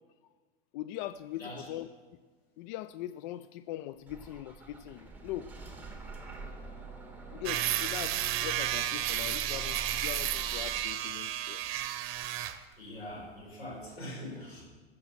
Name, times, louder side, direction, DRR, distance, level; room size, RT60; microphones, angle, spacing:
voice 1, 0.7-2.2 2.6-5.5 7.3-11.6, left 13 dB, 50° left, 14 dB, 0.5 m, -41 dB
Bus / Engine starting, 4.1-10.8, right 2 dB, 5° right, 2.1 m, -45 dB
sound 1, 7.4-12.6, right 12 dB, 45° right, 1.0 m, -32 dB
voice 2, 12.8-14.6, left 1 dB, 90° left, -3 dB, 4.9 m, -42 dB
14.0 x 7.2 x 6.8 m, 1.4 s
hypercardioid pair, 85°, 30 cm